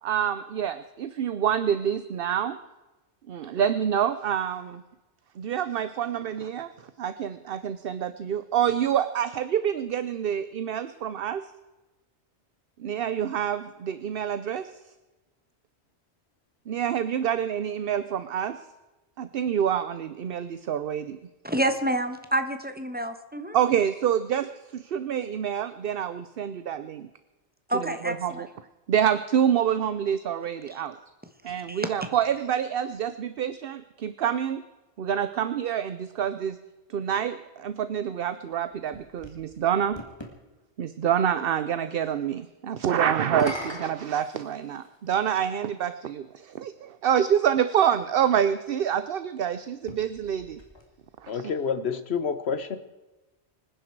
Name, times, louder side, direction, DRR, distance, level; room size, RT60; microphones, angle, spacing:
voice 1, 0.0-2.6 3.3-4.8 5.4-6.7 7.0-11.5 12.8-14.7 16.7-18.6 19.2-21.2 23.5-27.1 27.7-28.5 28.9-31.0 31.4-34.6 35.0-36.6 36.9-40.0 40.8-50.6 51.2-51.5, right 9 dB, 60° right, 12 dB, 0.8 m, -27 dB
voice 2, 21.4-23.6 27.7-28.4 31.5-32.1, right 1 dB, 10° right, 8 dB, 1.2 m, -28 dB
sound 1, 38.5-40.4 43.2-45.0 45.9-46.0 49.7-51.3, left 1 dB, 25° left, 2.3 m, -41 dB
voice 3, 51.3-52.8, left 6 dB, 70° left, 11 dB, 1.4 m, -28 dB
25.5 x 10.0 x 4.6 m, 1.1 s
omnidirectional pair, 1.1 m